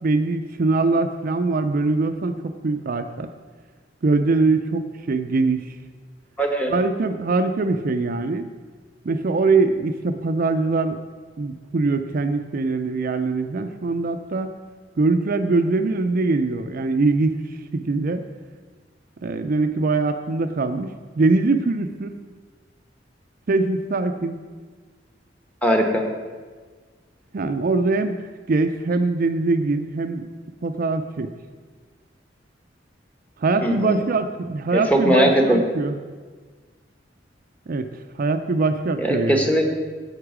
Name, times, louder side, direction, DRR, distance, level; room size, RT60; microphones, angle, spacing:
voice 1, 0.0-3.3 4.0-5.8 6.7-8.5 9.0-11.0 11.4-14.5 15.0-17.4 17.7-18.2 19.2-22.1 23.5-24.4 27.3-30.3 30.6-31.3 33.4-36.0 37.7-39.5, right 3 dB, 50° right, 7 dB, 0.4 m, -22 dB
voice 2, 6.4-6.7 25.6-26.0 33.6-34.0 34.7-35.6 39.0-39.6, right 1 dB, 10° left, 2 dB, 1.1 m, -19 dB
9.4 x 8.1 x 5.0 m, 1.5 s
head